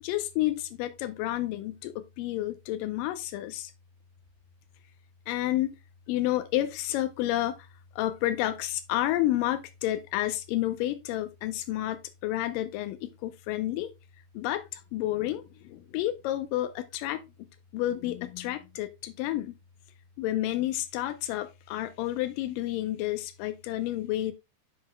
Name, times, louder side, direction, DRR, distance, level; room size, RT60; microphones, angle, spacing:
voice 1, 0.0-3.7 5.3-5.8 6.1-7.7 8.0-13.9 14.3-17.5 17.7-19.6 20.2-24.3, left 14 dB, 80° left, 2.3 m, -30 dB
10.0 x 4.9 x 2.2 m
omnidirectional pair, 4.0 m